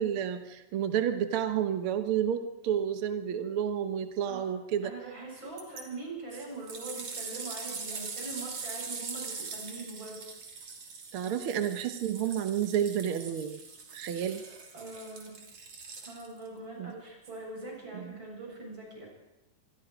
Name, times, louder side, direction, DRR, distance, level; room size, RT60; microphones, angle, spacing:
voice 1, 0.0-4.9 11.1-13.6 13.9-14.4 16.8-16.9 17.9-18.1, right 9 dB, 75° right, 8 dB, 1.2 m, -30 dB
voice 2, 4.8-10.2 14.7-15.4 16.0-19.1, right 3 dB, 35° right, -1 dB, 8.4 m, -42 dB
sound 1, 5.6-5.8 6.3-16.5 17.2-17.3, right 4 dB, 50° right, 3.8 m, -42 dB
25.5 x 22.0 x 5.1 m, 0.95 s
omnidirectional pair, 3.8 m